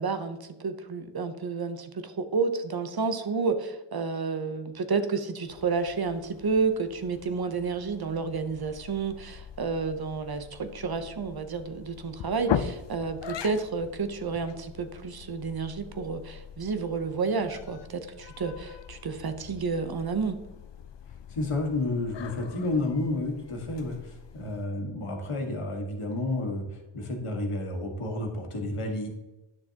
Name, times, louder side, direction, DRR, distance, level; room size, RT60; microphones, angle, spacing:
voice 1, 0.0-20.4, right 4 dB, 45° right, 9 dB, 0.8 m, -30 dB
sound 1, 5.5-24.7, left 8 dB, 60° left, 0.6 m, -41 dB
voice 2, 21.3-29.1, left 2 dB, 85° left, 2 dB, 1.7 m, -31 dB
9.8 x 6.5 x 2.8 m, 1.0 s
wide cardioid pair, 85°, 50 cm